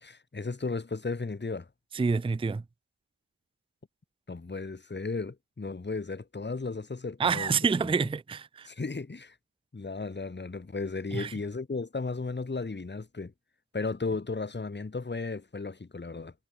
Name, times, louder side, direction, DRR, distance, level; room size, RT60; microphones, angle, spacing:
voice 1, 0.0-1.7 4.3-7.5 7.8-7.9 8.7-9.3 9.7-13.3 13.7-16.3, left 3 dB, 20° left, 1.3 m, -35 dB
voice 2, 1.9-2.6 7.2-8.7 11.1-11.3, right 5 dB, 10° right, 0.4 m, -27 dB
cardioid pair, 40°, 48 cm